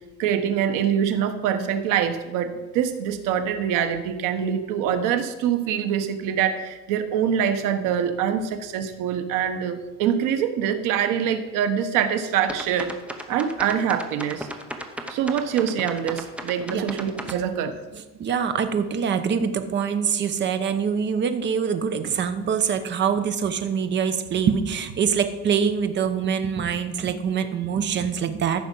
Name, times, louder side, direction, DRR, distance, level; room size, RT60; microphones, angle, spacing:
voice 1, 0.2-12.9 13.3-14.5 15.1-17.7, right 8 dB, 85° right, 7 dB, 1.3 m, -24 dB
sound 1, 12.5-17.4, right 1 dB, 5° right, 0.8 m, -35 dB
voice 2, 18.2-28.7, right 7 dB, 35° right, 9 dB, 0.9 m, -24 dB
14.5 x 6.3 x 5.5 m, 1.1 s
cardioid pair, 165°, 31 cm